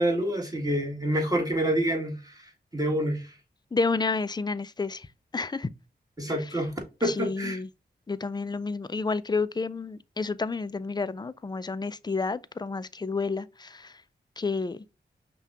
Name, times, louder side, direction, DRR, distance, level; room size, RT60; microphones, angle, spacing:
voice 1, 0.0-2.4 2.7-3.3 6.2-6.8 7.0-7.6, right 1 dB, 20° right, 1.7 m, -27 dB
voice 2, 3.7-5.1 5.3-5.7 7.0-7.7 8.1-13.9 14.4-14.8, left 4 dB, 25° left, 0.4 m, -30 dB
5.7 x 2.3 x 2.8 m
cardioid pair, 55°, 18 cm